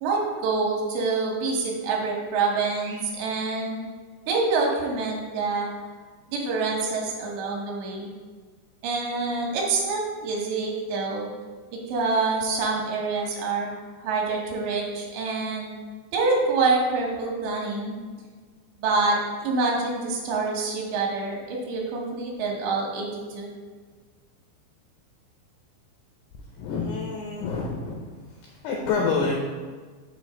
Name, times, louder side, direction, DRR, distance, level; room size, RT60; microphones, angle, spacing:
voice 1, 0.0-3.8 4.3-5.7 6.3-8.1 8.8-11.3 11.7-15.8 16.1-18.0 18.8-23.5, right 3 dB, 75° right, -2 dB, 2.9 m, -26 dB
voice 2, 26.6-28.0 28.3-29.3, left 4 dB, 85° left, -1 dB, 2.2 m, -27 dB
7.4 x 3.2 x 4.9 m, 1.5 s
omnidirectional pair, 5.2 m